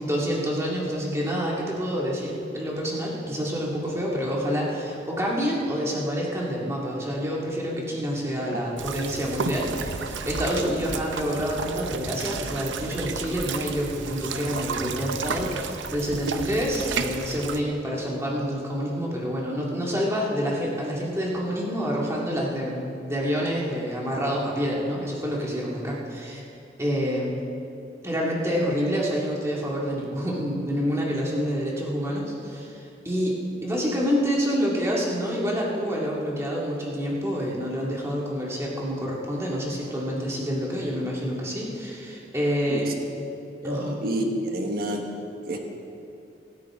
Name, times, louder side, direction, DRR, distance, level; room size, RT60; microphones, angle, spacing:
voice 1, 0.0-26.4 26.8-27.3 28.0-33.4 33.6-42.9 43.6-43.9, equal, 15° right, -4 dB, 2.2 m, -27 dB
sound 1, 8.8-17.6, right 5 dB, 85° right, 0.7 m, -32 dB
voice 2, 43.6-45.6, right 1 dB, 50° right, 2 dB, 1.4 m, -29 dB
24.5 x 9.5 x 3.7 m, 2.7 s
head